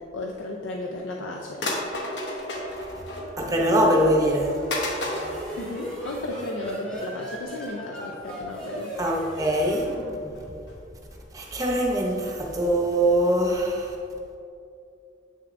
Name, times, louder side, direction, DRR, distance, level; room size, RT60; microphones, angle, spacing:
voice 1, 0.0-1.7 5.6-8.9, left 2 dB, 80° left, 0 dB, 0.5 m, -34 dB
sound 1, 0.8-0.9 1.6-3.6 4.0-4.1 4.7-6.5 6.9-7.2 7.5-7.7 8.3-8.4 8.7-8.8 9.5-9.9 10.3-10.7 11.1-11.5 11.9-12.0 12.2-12.3 12.6-12.7 12.9-13.0 13.3-13.4 13.5-13.6, left 1 dB, 60° left, 1.0 m, -34 dB
sound 2, 3.3-11.0, equal, 5° left, 1.0 m, -37 dB
voice 2, 3.4-4.5 9.0-9.8 11.3-13.9, right 1 dB, 20° right, 0 dB, 0.7 m, -22 dB
7.8 x 6.4 x 2.5 m, 2.6 s
head